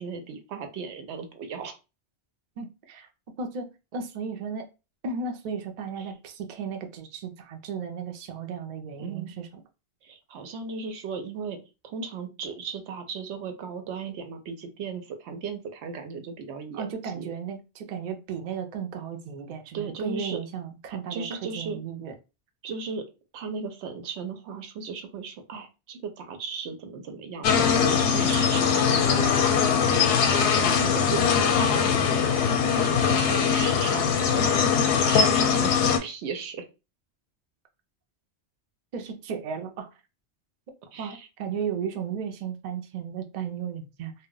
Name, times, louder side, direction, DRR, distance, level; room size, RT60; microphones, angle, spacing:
voice 1, 0.0-1.8 6.0-6.1 9.0-9.3 10.0-11.6 11.8-16.9 17.1-17.3 19.7-20.4 21.1-21.8 22.6-23.1 23.3-36.6 40.9-41.3, right 5 dB, 85° right, 7 dB, 0.9 m, -36 dB
voice 2, 2.6-3.1 3.4-3.7 3.9-4.6 5.0-9.5 16.7-22.1 38.9-39.9 41.0-44.1, right 6 dB, 55° right, 5 dB, 0.5 m, -34 dB
sound 1, 27.4-36.0, left 6 dB, 85° left, 0.9 m, -22 dB
2.2 x 2.0 x 3.7 m, 0.29 s
omnidirectional pair, 1.1 m